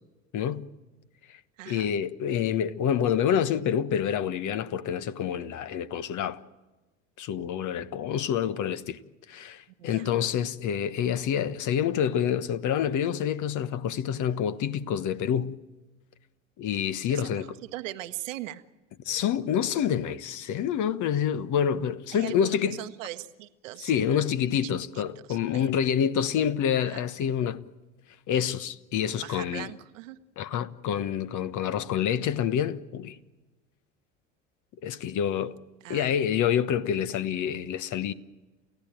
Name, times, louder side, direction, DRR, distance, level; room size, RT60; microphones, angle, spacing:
voice 1, 0.3-0.7 1.7-6.4 7.2-9.0 9.3-15.6 16.6-17.5 19.0-22.8 23.8-27.6 28.3-29.7 30.4-33.2 34.8-35.5 35.9-38.1, left 9 dB, 50° left, 1.2 m, -27 dB
voice 2, 1.6-1.9 9.8-10.2 17.1-18.6 22.1-23.9 24.6-25.0 25.3-25.7 26.8-27.1 29.1-30.2 35.8-36.1, right 16 dB, 80° right, 1.2 m, -40 dB
29.5 x 15.5 x 9.1 m
hypercardioid pair, 70°, 38 cm